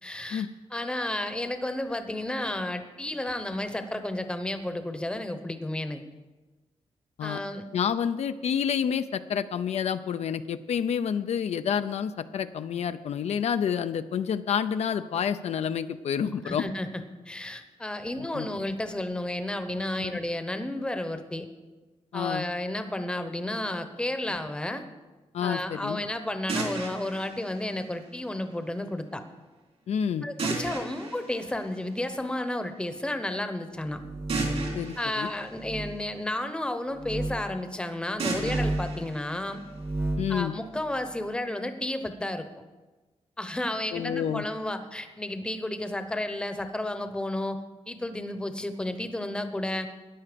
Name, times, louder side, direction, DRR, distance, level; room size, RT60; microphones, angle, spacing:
voice 1, 0.0-6.0 7.2-7.6 16.4-21.5 22.1-24.8 25.4-29.2 30.2-34.0 35.0-39.6 40.3-42.5 43.4-47.6 47.9-49.9, left 1 dB, 10° left, 8 dB, 0.8 m, -32 dB
voice 2, 7.7-16.7 18.2-18.5 20.0-20.2 22.1-22.4 25.3-26.0 29.9-30.3 34.7-35.3 40.2-40.5 43.9-44.5, left 8 dB, 80° left, 11 dB, 0.5 m, -29 dB
sound 1, 26.5-28.5 30.4-32.4 34.3-36.5 38.2-40.2, right 3 dB, 65° right, 3.3 m, -35 dB
sound 2, 33.9-34.9 35.6-35.9 36.9-37.4 38.3-39.0 39.6-40.3, right 2 dB, 20° right, 0.9 m, -31 dB
14.0 x 10.0 x 5.1 m, 1.2 s
wide cardioid pair, 165°, 11 cm